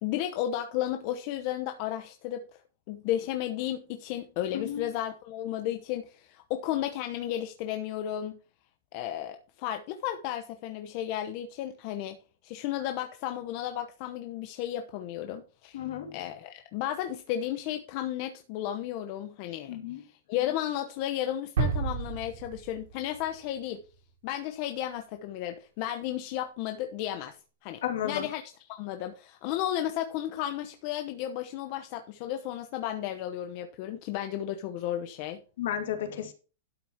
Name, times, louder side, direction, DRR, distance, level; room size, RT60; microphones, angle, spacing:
voice 1, 0.0-2.4 2.9-8.4 8.9-12.2 12.4-15.8 16.1-23.8 24.2-35.4, left 12 dB, 35° left, 0.9 m, -33 dB
voice 2, 4.5-4.9 15.7-16.2 19.7-20.0 27.8-28.3 35.6-36.3, left 10 dB, 60° left, 2.4 m, -33 dB
sound 1, 21.6-23.5, right 5 dB, 85° right, 4.9 m, -31 dB
12.0 x 6.3 x 4.5 m
supercardioid pair, 175°, 0 cm